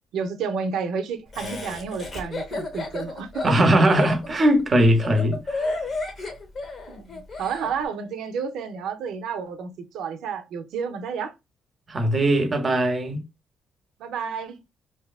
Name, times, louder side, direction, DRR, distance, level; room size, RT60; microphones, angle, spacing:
voice 1, 0.1-3.5 5.6-5.7 6.9-11.3 14.0-14.6, right 6 dB, 85° right, 0.4 m, -31 dB
Laughter, 1.3-7.7, left 3 dB, 45° left, 0.7 m, -32 dB
voice 2, 3.4-5.7 11.9-13.2, right 1 dB, 35° right, 0.6 m, -20 dB
2.6 x 2.3 x 2.3 m
cardioid pair, 90°, 0 cm